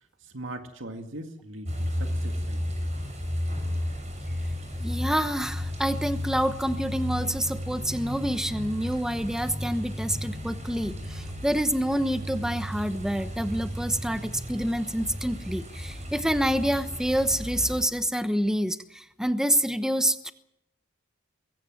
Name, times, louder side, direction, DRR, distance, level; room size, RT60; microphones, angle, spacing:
voice 1, 0.2-2.8, right 1 dB, 80° right, 5 dB, 2.1 m, -40 dB
sound 1, 1.6-17.8, equal, 35° right, 6.6 m, -33 dB
voice 2, 4.8-20.3, equal, 5° right, 10 dB, 1.0 m, -27 dB
22.0 x 17.0 x 7.9 m, 0.81 s
head